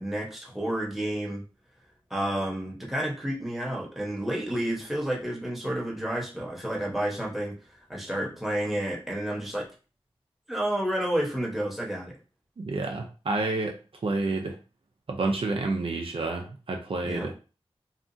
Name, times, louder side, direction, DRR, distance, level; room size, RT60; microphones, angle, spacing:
voice 1, 0.0-1.4 2.1-7.6 7.9-9.7 10.5-12.1 17.0-17.3, right 1 dB, ahead, -3 dB, 0.9 m, -30 dB
voice 2, 12.6-14.6 15.1-17.3, right 3 dB, 60° right, 2 dB, 0.4 m, -29 dB
2.8 x 2.4 x 2.5 m, 0.34 s
wide cardioid pair, 60°, 10 cm